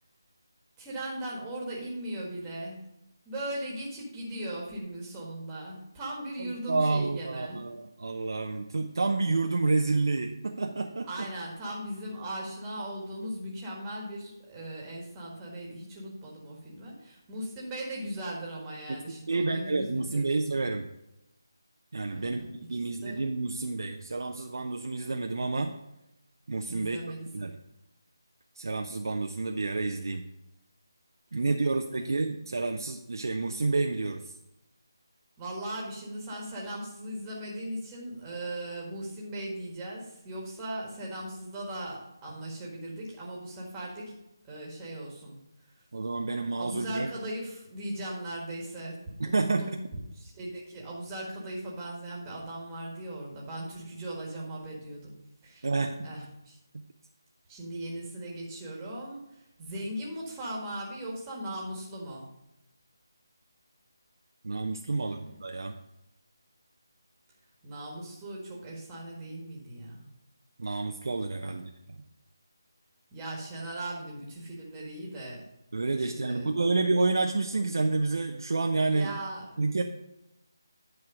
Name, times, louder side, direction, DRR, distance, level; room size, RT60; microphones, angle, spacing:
voice 1, 0.8-2.8 3.3-7.6 11.1-20.3 22.1-23.2 26.7-27.5 31.3-32.1 35.4-44.1 44.5-45.4 46.6-49.0 49.3-49.8 50.2-55.1 55.4-55.7 56.0-56.6 57.5-62.2 64.9-65.3 67.6-70.1 71.4-71.5 73.1-75.4 75.9-76.7 78.9-79.6, right 1 dB, 15° right, -3 dB, 1.7 m, -38 dB
voice 2, 6.4-11.3 18.9-19.0 19.3-20.9 21.9-25.8 26.5-27.0 27.3-27.6 28.6-30.2 31.3-34.3 45.9-47.1 49.2-49.8 55.6-56.1 56.7-56.8 64.4-65.8 70.6-71.7 75.7-79.2 79.6-79.8, right 3 dB, 65° right, 4 dB, 0.6 m, -29 dB
9.7 x 4.6 x 5.0 m, 0.89 s
figure-of-eight pair, 170°, 2 cm